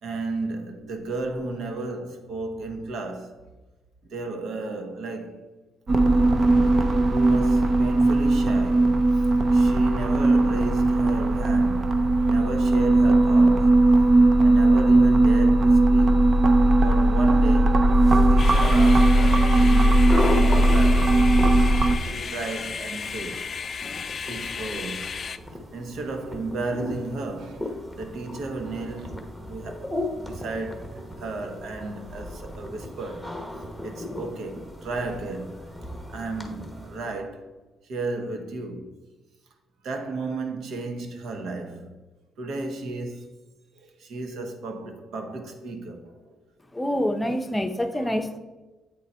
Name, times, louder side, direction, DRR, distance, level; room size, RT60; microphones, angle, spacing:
voice 1, 0.0-3.4 4.1-5.5 7.1-13.8 14.4-16.4 16.8-21.3 22.0-23.5 24.1-25.2 25.7-33.4 33.8-35.6 36.1-37.5 37.8-38.9 39.8-41.9 42.4-43.3 43.7-46.4 47.9-48.1, right 2 dB, 70° right, 1.1 m, -34 dB
sound 1, 5.9-22.0, right 2 dB, 45° right, 0.6 m, -18 dB
sound 2, 17.9-37.2, left 1 dB, 5° right, 1.1 m, -36 dB
sound 3, 18.4-25.4, left 6 dB, 45° left, 0.3 m, -34 dB
voice 2, 46.7-48.4, equal, 10° left, 0.7 m, -26 dB
8.4 x 4.0 x 4.3 m
cardioid pair, 90°, 0 cm